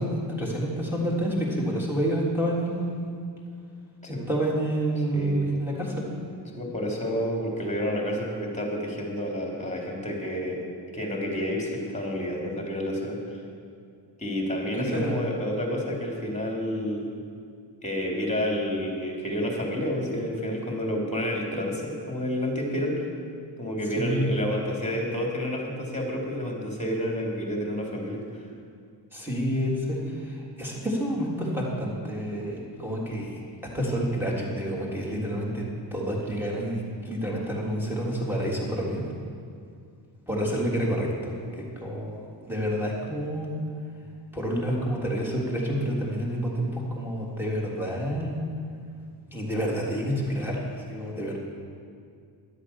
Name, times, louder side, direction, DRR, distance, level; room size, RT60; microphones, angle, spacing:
voice 1, 0.0-3.1 4.3-6.1 14.7-15.2 23.9-24.3 29.1-33.4 33.7-35.6 35.9-39.1 40.3-43.5 44.3-48.4 49.3-51.4, equal, 5° right, -4 dB, 3.5 m, -28 dB
voice 2, 5.1-5.5 6.5-10.6 10.9-13.4 14.2-17.1 17.8-23.1 23.6-28.4, equal, 15° left, -1 dB, 3.3 m, -29 dB
12.0 x 8.3 x 7.3 m, 2.3 s
cardioid pair, 70°, 46 cm